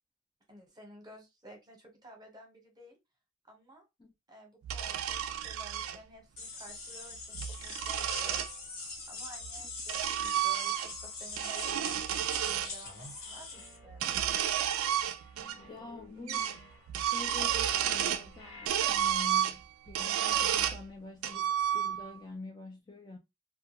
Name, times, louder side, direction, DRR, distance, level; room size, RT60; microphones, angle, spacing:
voice 1, 0.5-3.0 3.5-3.8 4.3-8.5 9.1-14.1, right 1 dB, 20° right, 0.8 m, -53 dB
sound 1, 4.6-6.0 7.2-8.5 9.4-11.1 11.3-12.7 13.9-15.6 15.8-15.9 16.3-16.6 16.9-18.3 18.7-20.8 21.2-22.2, right 10 dB, 85° right, 0.3 m, -31 dB
sound 2, 6.4-13.8, left 3 dB, 85° left, 1.1 m, -43 dB
sound 3, 12.8-14.0 14.3-18.7, left 3 dB, 65° left, 1.0 m, -54 dB
voice 2, 15.7-16.5 16.9-23.2, left 3 dB, 20° left, 0.4 m, -46 dB
2.3 x 2.2 x 2.8 m
head